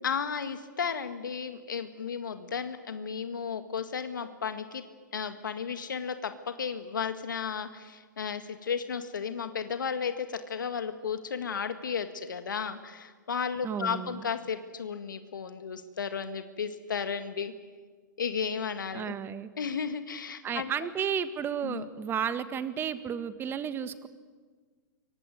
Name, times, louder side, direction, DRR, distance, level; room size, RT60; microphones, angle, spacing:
voice 1, 0.0-4.8 5.1-17.5 18.2-19.1 19.6-20.9 21.6-21.8, left 6 dB, 80° left, 9 dB, 1.9 m, -34 dB
voice 2, 13.6-14.2 18.9-19.5 20.4-24.1, right 8 dB, 20° right, 12 dB, 1.7 m, -33 dB
27.0 x 23.5 x 9.3 m, 1.5 s
hypercardioid pair, 125°, 10 cm